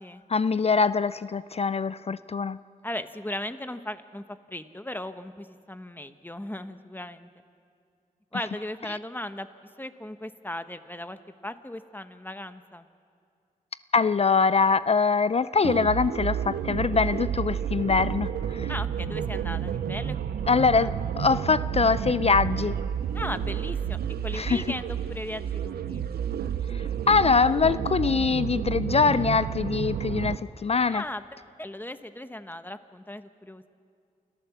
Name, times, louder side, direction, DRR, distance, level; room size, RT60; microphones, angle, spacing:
voice 1, 0.3-2.6 13.9-18.7 20.5-22.8 24.3-24.6 26.7-31.0, left 5 dB, 40° left, 16 dB, 0.4 m, -23 dB
voice 2, 2.8-7.3 8.3-9.5 9.8-12.9 18.7-20.4 20.8-20.9 23.1-26.0 30.9-31.2 31.6-33.7, left 1 dB, 10° left, 10 dB, 1.2 m, -37 dB
sound 1, 15.6-30.4, right 8 dB, 90° right, 0.6 m, -30 dB
28.0 x 13.5 x 7.3 m, 2.3 s
cardioid pair, 40°, 16 cm